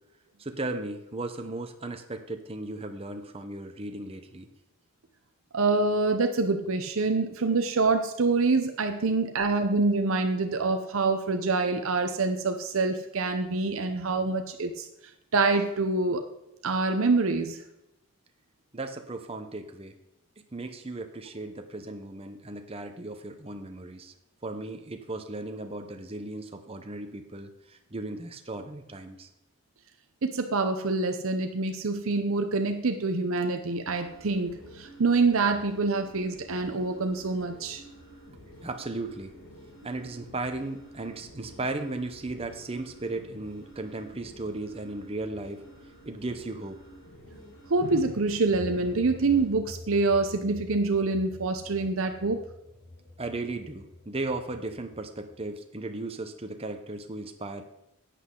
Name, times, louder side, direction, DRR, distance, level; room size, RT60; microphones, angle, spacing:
voice 1, 0.4-4.5 18.7-20.0 20.5-24.1 24.4-29.3 38.6-39.4 39.8-45.6 46.0-46.8 53.2-57.6, right 2 dB, 25° right, 6 dB, 0.8 m, -36 dB
voice 2, 5.5-14.9 15.3-16.2 16.6-17.6 30.2-37.8 47.7-52.4, right 3 dB, 65° right, 6 dB, 0.7 m, -26 dB
sound 1, 33.9-49.5, equal, 65° left, 4.0 m, -50 dB
sound 2, 48.5-55.4, left 1 dB, 35° left, 2.9 m, -46 dB
11.5 x 8.4 x 3.8 m, 0.86 s
head